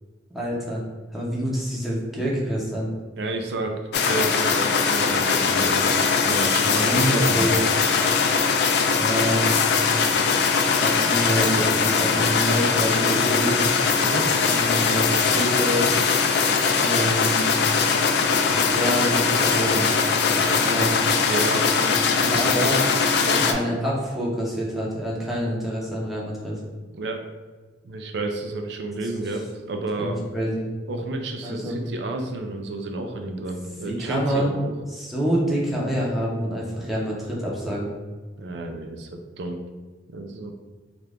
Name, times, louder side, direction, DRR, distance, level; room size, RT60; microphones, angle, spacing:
voice 1, 0.3-0.8 1.1-2.9 6.6-7.6 9.0-9.4 9.9-10.4 10.7-13.7 14.4-16.0 16.8-17.5 18.5-19.9 20.2-20.9 22.3-22.8 23.5-26.5 30.0-30.7 31.4-31.8 33.9-34.5 34.9-37.9, equal, ahead, -5 dB, 0.7 m, -26 dB
voice 2, 3.2-7.5 14.0-14.3 21.0-22.4 23.2-23.5 26.9-27.2 27.8-30.3 30.9-34.7 38.4-39.6 40.1-40.5, right 2 dB, 70° right, 4 dB, 0.4 m, -31 dB
sound 1, 3.9-23.5, left 5 dB, 65° left, 0.3 m, -21 dB
2.9 x 2.4 x 3.4 m, 1.3 s
head